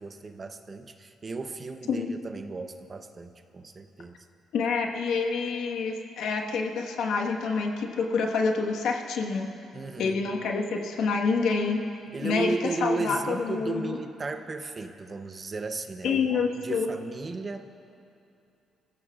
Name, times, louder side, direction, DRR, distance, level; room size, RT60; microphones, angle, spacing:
voice 1, 0.0-4.1 9.7-10.2 12.1-17.7, right 3 dB, 30° right, 7 dB, 0.7 m, -35 dB
voice 2, 4.5-9.5 10.0-11.8 12.2-12.5 12.8-14.0 16.0-16.9, left 4 dB, 80° left, 1 dB, 1.3 m, -27 dB
25.0 x 15.5 x 2.4 m, 2.7 s
cardioid pair, 145°, 0 cm